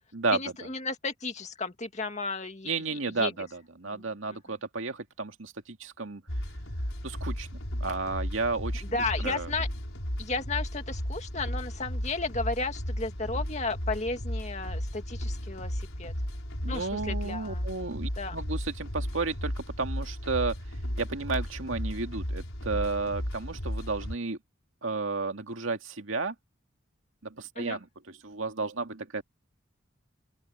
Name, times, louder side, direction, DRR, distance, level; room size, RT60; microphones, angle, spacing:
voice 1, 0.3-3.3 3.9-4.4 8.8-9.7 10.2-16.1 16.7-17.7 18.2-18.4 27.6-27.8, left 3 dB, 35° left, 2.3 m, -34 dB
voice 2, 2.6-6.2 7.0-7.5 7.8-8.8 9.2-9.5 16.6-20.6 21.0-24.4 24.8-26.3 27.2-29.2, right 3 dB, 80° right, 2.1 m, -32 dB
sound 1, 6.3-24.2, equal, 90° left, 5.4 m, -34 dB
open air
head